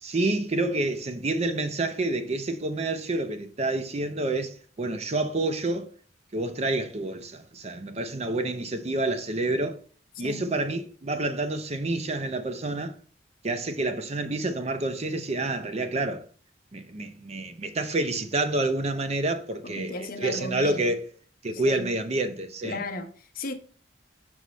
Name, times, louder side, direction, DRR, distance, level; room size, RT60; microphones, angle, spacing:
voice 1, 0.0-5.9 6.3-9.8 10.2-12.9 13.4-16.3 16.7-21.0 21.4-22.8, right 2 dB, 35° right, 0.5 m, -28 dB
voice 2, 19.6-20.8 21.6-21.9 22.6-23.5, left 2 dB, 50° left, 0.8 m, -35 dB
6.1 x 5.3 x 3.1 m
head